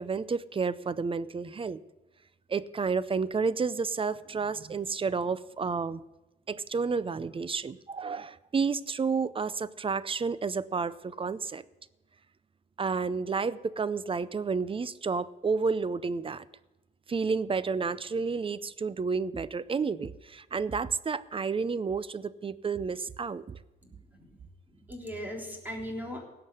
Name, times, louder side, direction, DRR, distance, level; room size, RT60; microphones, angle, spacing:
voice 1, 0.0-1.8 2.5-6.0 6.5-11.6 12.8-16.5 17.1-23.6, right 5 dB, 25° right, 18 dB, 0.5 m, -31 dB
voice 2, 23.8-24.4 24.7-26.2, equal, 10° right, 0 dB, 3.6 m, -39 dB
17.0 x 5.9 x 9.7 m, 1.0 s
cardioid pair, 90°, 20 cm